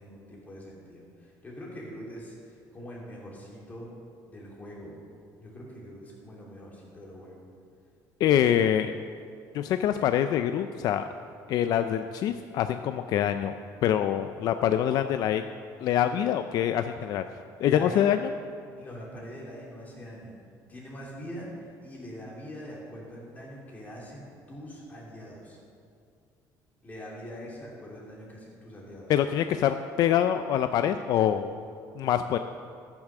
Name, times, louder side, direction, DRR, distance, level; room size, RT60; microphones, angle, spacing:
voice 1, 0.0-3.9 4.3-5.0 5.4-7.5 17.6-18.0 18.8-20.3 20.7-25.6 26.8-29.1, equal, 20° left, -4 dB, 3.2 m, -43 dB
voice 2, 8.2-8.9 9.5-11.0 11.5-13.5 13.8-15.4 15.8-17.2 17.6-18.3 29.1-31.6 32.0-32.4, left 10 dB, 60° left, 9 dB, 0.4 m, -25 dB
14.0 x 7.1 x 6.6 m, 2.3 s
cardioid pair, 145°, 8 cm